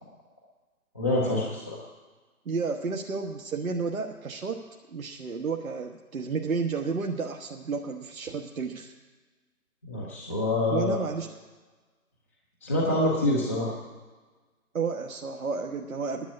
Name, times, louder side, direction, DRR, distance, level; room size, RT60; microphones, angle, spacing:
voice 1, 0.9-1.8 9.8-11.0 12.6-13.8, left 1 dB, 10° left, -5 dB, 0.7 m, -26 dB
voice 2, 2.4-8.9 10.7-11.3 14.7-16.3, right 4 dB, 70° right, 2 dB, 1.3 m, -31 dB
10.5 x 8.3 x 9.6 m, 1.3 s
figure-of-eight pair, 150°, 44 cm